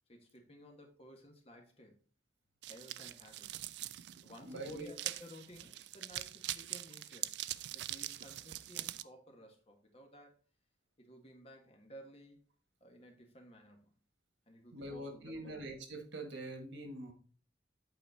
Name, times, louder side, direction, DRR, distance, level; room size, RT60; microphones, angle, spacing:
voice 1, 0.1-2.0 2.7-3.6 4.2-7.4 7.7-10.4 11.0-12.4 12.8-13.9 14.5-15.6, equal, 30° left, 1.4 m, -55 dB
sound 1, 2.6-9.0, right 14 dB, 65° right, 0.3 m, -43 dB
voice 2, 4.4-4.9 14.7-17.1, right 2 dB, 90° right, 1.8 m, -44 dB
8.1 x 4.3 x 4.1 m
head